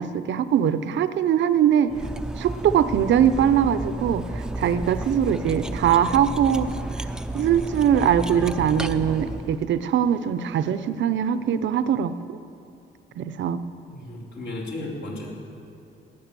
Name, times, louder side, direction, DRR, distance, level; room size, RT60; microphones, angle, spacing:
voice 1, 0.0-1.9 2.4-6.7 6.9-7.1 7.3-12.1 13.2-13.6, right 9 dB, 75° right, 13 dB, 0.7 m, -22 dB
Cutlery silverware, 1.9-9.6, right 1 dB, 5° right, 0.6 m, -32 dB
voice 2, 13.9-15.3, left 1 dB, 65° left, -3 dB, 3.8 m, -34 dB
17.5 x 9.7 x 6.8 m, 2.7 s
cardioid pair, 105°, 19 cm